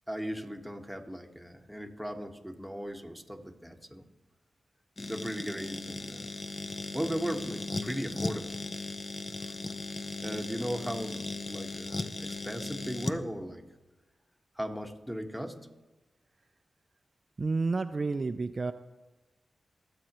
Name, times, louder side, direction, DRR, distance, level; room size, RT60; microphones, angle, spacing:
voice 1, 0.1-4.0 5.0-6.3 6.9-8.6 9.4-9.5 10.2-11.2 11.5-13.6 14.5-15.6, equal, ahead, 4 dB, 1.4 m, -37 dB
sound 1, 5.0-13.2, left 2 dB, 40° left, 0.7 m, -37 dB
voice 2, 17.4-18.7, right 3 dB, 50° right, 10 dB, 0.4 m, -30 dB
19.5 x 7.7 x 3.1 m, 1.1 s
cardioid pair, 45°, 0 cm